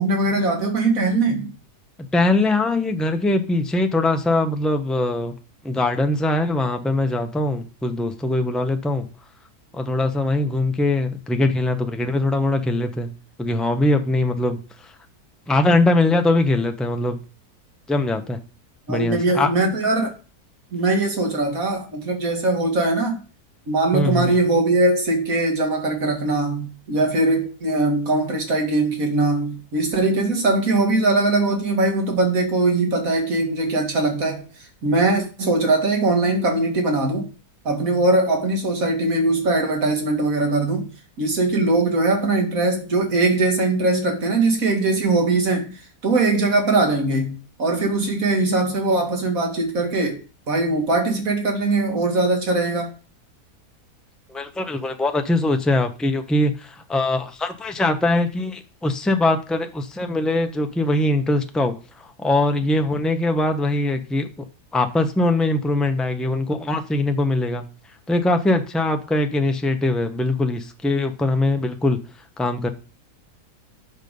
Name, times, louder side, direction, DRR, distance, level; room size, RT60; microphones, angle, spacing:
voice 1, 0.0-1.5 18.9-20.1 20.7-23.2 23.7-34.4 34.8-37.2 37.6-40.9 41.2-45.7 46.0-52.9, right 2 dB, 60° right, 2.4 m, -21 dB
voice 2, 2.1-5.3 5.6-9.1 9.7-14.9 15.5-17.2 17.9-18.4 18.9-19.5 23.9-24.3 54.3-64.3 64.7-67.7 68.1-72.0 72.4-72.7, left 2 dB, ahead, 0.3 m, -22 dB
8.2 x 6.6 x 5.3 m
omnidirectional pair, 1.6 m